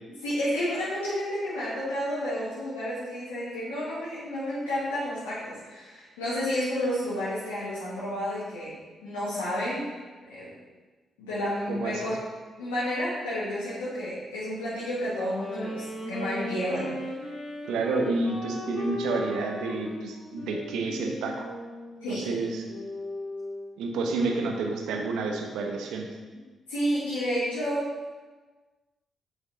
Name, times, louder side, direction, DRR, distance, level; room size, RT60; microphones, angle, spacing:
voice 1, 0.2-9.9 10.2-10.5 11.2-12.2 12.6-17.1 22.0-22.3 26.7-27.9, equal, 90° left, -11 dB, 1.7 m, -31 dB
voice 2, 11.7-12.0 17.7-21.5 22.1-22.6 23.8-26.1, right 3 dB, 75° right, 3 dB, 0.8 m, -29 dB
Wind instrument woodwind instrument, 15.0-23.7, left 1 dB, 70° left, 2.2 m, -37 dB
7.1 x 5.2 x 4.0 m, 1.3 s
hypercardioid pair, 45°, 0 cm